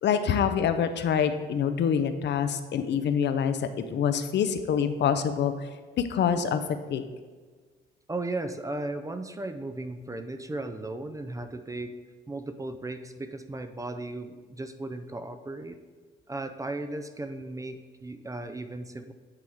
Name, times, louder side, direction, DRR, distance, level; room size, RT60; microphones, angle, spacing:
voice 1, 0.0-5.5 6.0-6.6 6.9-7.0, left 7 dB, 60° left, 10 dB, 0.5 m, -26 dB
voice 2, 8.1-12.0 12.3-15.8 16.3-19.1, right 2 dB, 15° right, 9 dB, 0.4 m, -36 dB
8.6 x 3.5 x 4.6 m, 1.4 s
cardioid pair, 90°, 20 cm